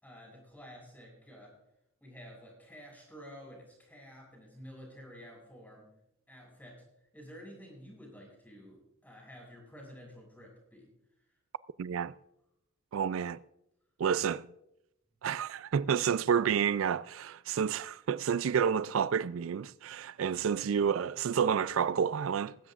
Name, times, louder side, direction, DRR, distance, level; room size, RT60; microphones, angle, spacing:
voice 1, 0.0-1.6 2.0-5.9 6.3-6.8 7.1-10.9 15.2-15.3 20.7-20.9, equal, 10° left, 6.2 m, -51 dB
voice 2, 11.8-12.1 12.9-13.4 14.0-14.5 15.2-22.6, right 7 dB, 80° right, 0.4 m, -29 dB
19.5 x 16.0 x 2.5 m
head